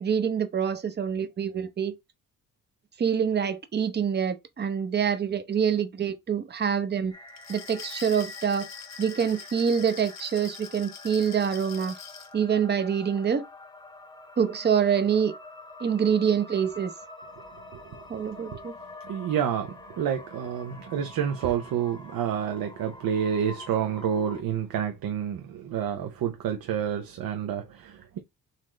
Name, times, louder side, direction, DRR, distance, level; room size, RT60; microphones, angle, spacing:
voice 1, 0.0-2.0 3.0-7.1 7.5-8.7 9.0-11.9 12.3-13.5 14.4-15.3 15.8-16.9 18.1-18.7, right 7 dB, 30° right, 0.7 m, -26 dB
sound 1, 7.1-24.4, left 2 dB, 10° left, 0.9 m, -46 dB
Glass, 7.3-12.3, left 8 dB, 50° left, 0.7 m, -44 dB
voice 2, 17.7-18.2 18.5-18.6 19.0-28.2, right 8 dB, 80° right, 0.8 m, -29 dB
4.2 x 3.2 x 3.7 m
cardioid pair, 120°, 34 cm